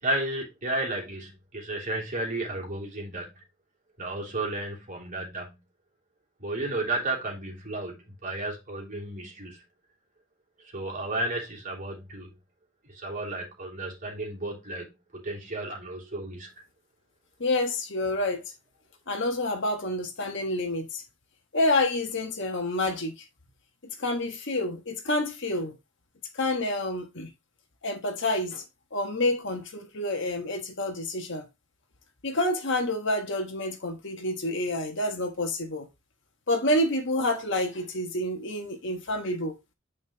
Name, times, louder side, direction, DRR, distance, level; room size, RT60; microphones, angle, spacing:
voice 1, 0.0-3.3 4.0-5.5 6.4-9.6 10.7-12.3 12.9-14.9 15.1-16.5, right 2 dB, 40° right, 3.1 m, -33 dB
voice 2, 17.4-18.4 19.1-21.0 21.5-23.1 24.0-25.8 26.3-27.3 27.8-28.6 28.9-31.5 32.2-35.9 36.5-39.5, left 1 dB, 60° left, 1.4 m, -28 dB
9.1 x 5.1 x 2.9 m
head